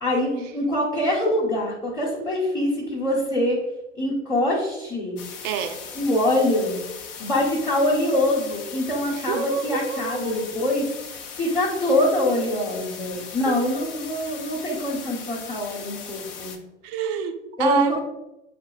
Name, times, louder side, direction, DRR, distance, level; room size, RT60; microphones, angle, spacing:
voice 1, 0.0-3.6 4.0-5.2 5.9-6.7 7.2-10.9 11.4-16.5 17.6-18.0, left 1 dB, 5° left, -6 dB, 1.0 m, -24 dB
sound 1, 5.2-16.6, left 6 dB, 30° left, 0.6 m, -39 dB
voice 2, 5.4-5.8 9.1-10.5 13.2-13.6 16.8-18.0, right 6 dB, 40° right, 6 dB, 0.6 m, -27 dB
7.3 x 2.7 x 2.4 m, 0.94 s
hypercardioid pair, 95°, 37 cm